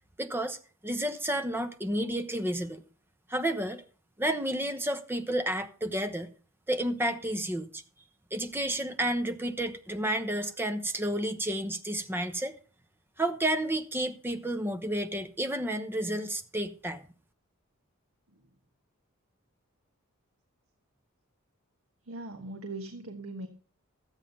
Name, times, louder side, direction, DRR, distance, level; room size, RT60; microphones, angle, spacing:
voice 1, 0.2-0.6 0.8-2.8 3.3-3.8 4.2-6.3 6.7-7.8 8.3-12.6 13.2-17.0, right 1 dB, 10° right, 0.9 m, -31 dB
voice 2, 22.1-23.5, right 2 dB, 80° right, 1.3 m, -40 dB
13.0 x 8.9 x 5.4 m
head